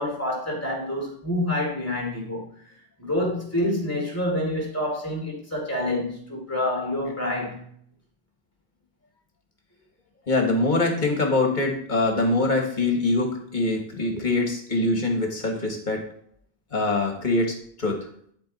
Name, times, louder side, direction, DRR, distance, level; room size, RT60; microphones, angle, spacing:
voice 1, 0.0-2.4 3.0-7.7, left 1 dB, 15° left, -2 dB, 2.7 m, -27 dB
voice 2, 10.3-16.0 16.7-18.1, left 2 dB, 50° left, 2 dB, 1.5 m, -24 dB
11.0 x 4.6 x 4.0 m, 0.63 s
omnidirectional pair, 1.0 m